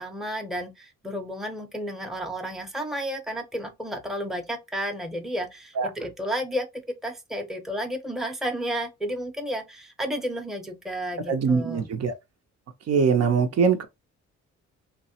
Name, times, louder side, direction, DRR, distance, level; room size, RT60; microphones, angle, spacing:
voice 1, 0.0-6.7 7.0-11.9, equal, ahead, 0.7 m, -32 dB
voice 2, 11.3-12.1 12.9-13.9, right 5 dB, 55° right, 0.6 m, -22 dB
3.2 x 2.1 x 2.8 m
cardioid pair, 90°, 30 cm